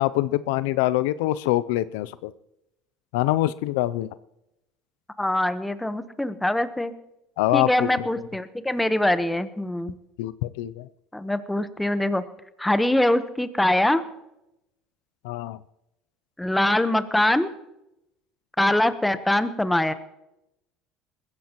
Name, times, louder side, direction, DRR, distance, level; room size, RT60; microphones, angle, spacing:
voice 1, 0.0-2.3 3.1-4.1 7.4-7.9 10.2-10.9 15.2-15.6, left 16 dB, 85° left, 16 dB, 0.4 m, -24 dB
voice 2, 5.2-6.9 7.5-9.9 11.1-12.2 12.6-14.0 16.4-17.5 18.6-19.9, left 1 dB, 5° left, 12 dB, 0.9 m, -23 dB
21.0 x 15.0 x 3.0 m, 0.90 s
supercardioid pair, 105°, 0 cm